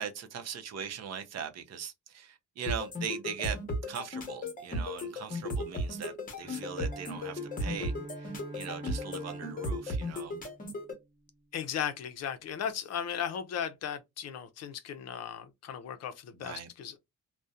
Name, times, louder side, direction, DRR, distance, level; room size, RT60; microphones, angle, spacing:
voice 1, 0.0-3.6 3.9-10.3 16.3-16.7, right 7 dB, 55° right, 0.6 m, -40 dB
sound 1, 2.7-10.9, left 1 dB, 25° left, 0.8 m, -35 dB
Bowed string instrument, 6.4-11.3, right 2 dB, 40° right, 1.0 m, -45 dB
voice 2, 11.5-17.0, left 8 dB, 55° left, 0.5 m, -36 dB
2.7 x 2.1 x 2.3 m
cardioid pair, 145°, 31 cm